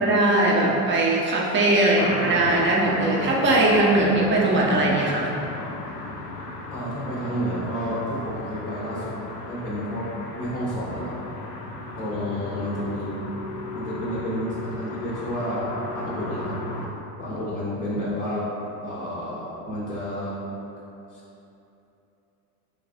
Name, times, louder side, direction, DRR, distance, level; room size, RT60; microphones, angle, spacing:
voice 1, 0.0-5.3, right 2 dB, 25° right, -3 dB, 0.7 m, -20 dB
sound 1, 2.0-16.9, left 2 dB, 85° left, 0.6 m, -35 dB
voice 2, 6.7-9.1 9.4-11.1 12.0-13.1 13.7-16.5 17.2-18.5 18.8-20.4 21.1-21.2, equal, 20° left, -8 dB, 0.7 m, -30 dB
3.2 x 2.4 x 3.5 m, 2.9 s
hypercardioid pair, 75°, 47 cm